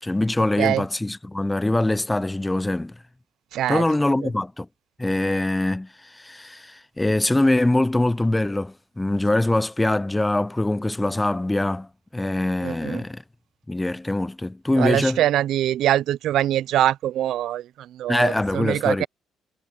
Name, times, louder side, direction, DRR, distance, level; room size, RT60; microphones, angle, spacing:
voice 1, 0.0-3.0 3.7-4.7 5.0-13.2 13.7-15.2 18.1-19.1, left 2 dB, 10° left, 0.5 m, -23 dB
voice 2, 3.5-3.8 12.6-13.0 14.8-19.1, right 12 dB, 70° right, 0.4 m, -23 dB
supercardioid pair, 80°, 0 cm